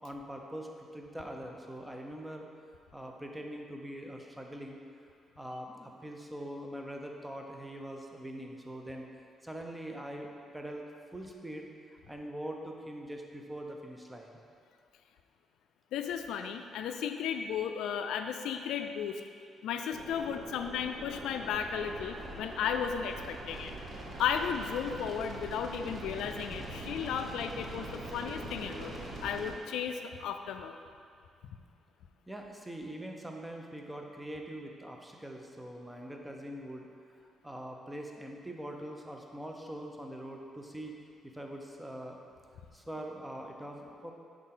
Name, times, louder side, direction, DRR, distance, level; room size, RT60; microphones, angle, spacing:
voice 1, 0.0-2.5 2.9-4.8 5.4-9.1 9.4-10.8 11.1-11.7 12.1-14.4 32.3-36.9 37.2-41.0 41.2-42.2 42.7-44.1, right 1 dB, 10° right, 1 dB, 0.7 m, -43 dB
voice 2, 15.9-19.2 19.6-23.7 24.2-29.0 29.2-30.8, left 7 dB, 85° left, 7 dB, 0.3 m, -34 dB
sound 1, 19.9-29.5, right 1 dB, 45° right, 1.2 m, -43 dB
6.3 x 4.7 x 3.8 m, 2.3 s
cardioid pair, 90°, 0 cm